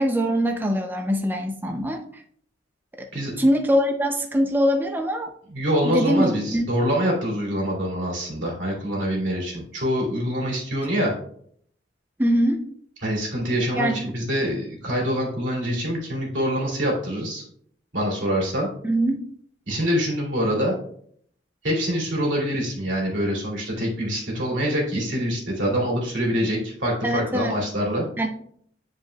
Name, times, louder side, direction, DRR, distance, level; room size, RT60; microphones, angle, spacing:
voice 1, 0.0-2.0 3.0-3.1 3.4-5.3 5.8-6.7 12.2-12.6 13.7-14.1 18.8-19.2 27.0-27.6 28.2-28.3, equal, 10° right, 4 dB, 0.5 m, -23 dB
voice 2, 5.5-11.1 13.0-17.4 17.9-18.7 19.7-20.7 21.6-28.1, equal, 80° right, -3 dB, 2.6 m, -25 dB
10.5 x 4.8 x 2.2 m, 0.63 s
head